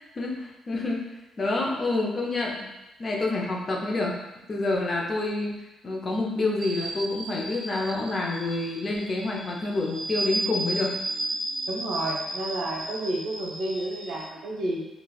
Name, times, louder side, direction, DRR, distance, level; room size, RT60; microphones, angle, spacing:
voice 1, 0.1-1.1 1.4-2.7 3.0-4.2 4.5-5.5 5.8-11.0, left 2 dB, 35° left, -1 dB, 0.6 m, -28 dB
sound 1, 6.6-14.3, right 1 dB, 20° right, 0.4 m, -34 dB
voice 2, 11.7-14.8, right 1 dB, 70° right, -2 dB, 0.7 m, -31 dB
4.1 x 2.3 x 2.3 m, 0.98 s
cardioid pair, 90°, 0 cm